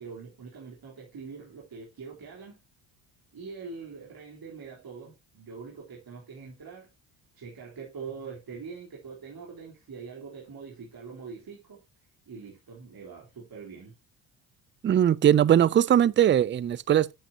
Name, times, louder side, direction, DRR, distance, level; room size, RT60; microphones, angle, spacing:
voice 1, 0.0-2.6 3.3-6.9 7.3-11.8 12.3-13.9, right 5 dB, 45° right, 3.8 m, -43 dB
voice 2, 14.8-17.1, right 10 dB, 25° right, 0.4 m, -20 dB
8.9 x 7.6 x 2.8 m
supercardioid pair, 75°, 49 cm